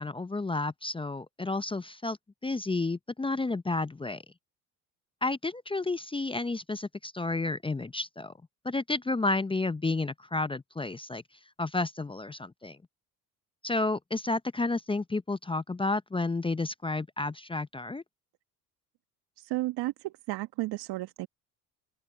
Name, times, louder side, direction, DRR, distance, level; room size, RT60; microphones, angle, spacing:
voice 1, 0.0-2.2 2.4-4.2 5.2-8.3 8.6-11.2 11.6-12.8 13.6-18.0, left 3 dB, 10° left, 0.7 m, -31 dB
voice 2, 19.4-21.3, right 18 dB, 65° right, 1.5 m, -33 dB
open air
hypercardioid pair, 65°, 43 cm